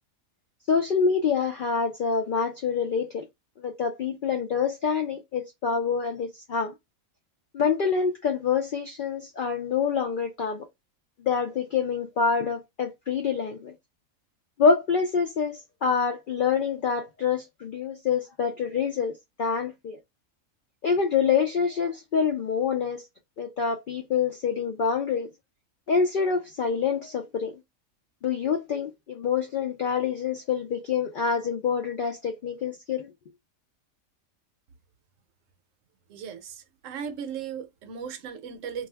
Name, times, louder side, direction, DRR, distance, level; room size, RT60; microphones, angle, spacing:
voice 1, 0.7-3.2 3.6-6.7 7.5-10.7 11.2-13.7 14.6-20.0 20.8-23.0 23.4-25.3 25.9-27.6 28.2-33.1, left 6 dB, 85° left, 0.4 m, -26 dB
voice 2, 36.1-38.9, right 7 dB, 70° right, 0.9 m, -37 dB
2.4 x 2.2 x 3.3 m
omnidirectional pair, 1.4 m